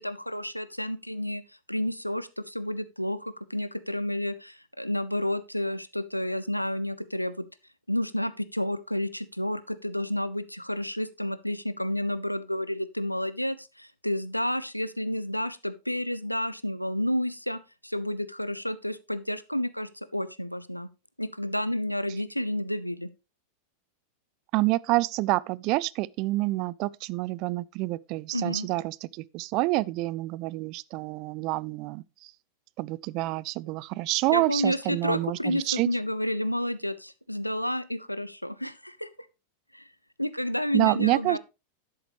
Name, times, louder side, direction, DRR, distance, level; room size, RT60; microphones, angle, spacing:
voice 1, 0.0-1.4 1.7-7.3 7.9-20.9 21.2-23.1 28.3-28.7 34.3-39.1 39.7-39.9 40.2-41.4, left 1 dB, 90° left, 0.6 m, -30 dB
voice 2, 24.5-32.3 32.8-35.9 40.7-41.4, right 20 dB, 40° right, 0.4 m, -28 dB
11.0 x 8.0 x 3.1 m
figure-of-eight pair, 90°, 0 cm